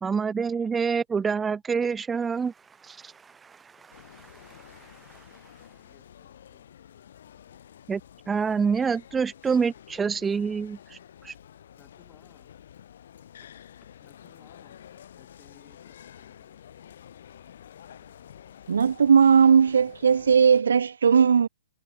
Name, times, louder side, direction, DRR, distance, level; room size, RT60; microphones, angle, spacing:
voice 1, 0.0-2.5 2.9-3.1 7.9-8.0 8.3-10.8 11.2-11.3, right 5 dB, 10° right, 0.8 m, -26 dB
sound 1, 3.9-20.6, left 9 dB, 60° left, 7.4 m, -50 dB
voice 2, 4.4-4.7 5.6-6.6 11.8-12.5 14.0-14.8 15.2-16.6, left 7 dB, 15° left, 4.3 m, -60 dB
voice 3, 18.7-21.5, right 6 dB, 70° right, 0.4 m, -18 dB
hypercardioid pair, 130°, 0 cm